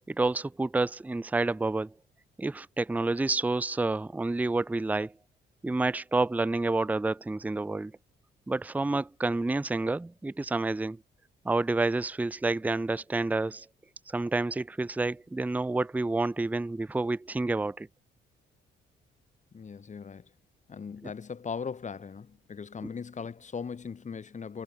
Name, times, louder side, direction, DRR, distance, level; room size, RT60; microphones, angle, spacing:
voice 1, 0.1-1.9 2.4-5.1 5.6-7.9 8.5-11.0 11.4-13.7 14.1-17.9 21.0-21.1 22.8-22.9, right 2 dB, 10° right, 0.5 m, -29 dB
voice 2, 19.5-20.3 20.7-24.6, left 6 dB, 40° left, 2.2 m, -39 dB
cardioid pair, 90°, 20 cm